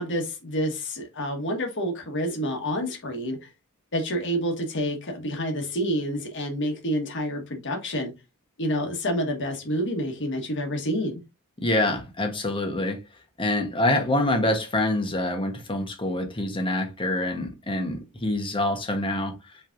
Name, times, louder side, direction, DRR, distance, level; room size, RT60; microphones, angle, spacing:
voice 1, 0.0-3.5 3.9-8.1 8.6-11.2, equal, 55° left, 1.4 m, -28 dB
voice 2, 11.6-13.0 13.4-19.3, left 1 dB, 25° left, 1.0 m, -26 dB
5.9 x 3.2 x 2.5 m
head